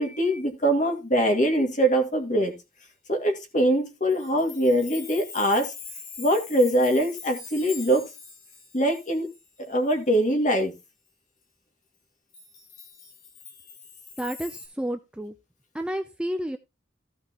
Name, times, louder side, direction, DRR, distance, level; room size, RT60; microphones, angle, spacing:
voice 1, 0.0-2.6 3.1-5.7 6.2-8.1 8.7-9.3 9.6-10.7, right 1 dB, 40° left, 4 dB, 2.2 m, -23 dB
Chime, 4.1-10.2 10.6-10.7 12.3-14.7, left 5 dB, 85° left, 4.1 m, -43 dB
voice 2, 14.2-15.3 15.7-16.6, equal, 5° right, 7 dB, 0.5 m, -31 dB
15.0 x 5.7 x 3.0 m, 0.25 s
head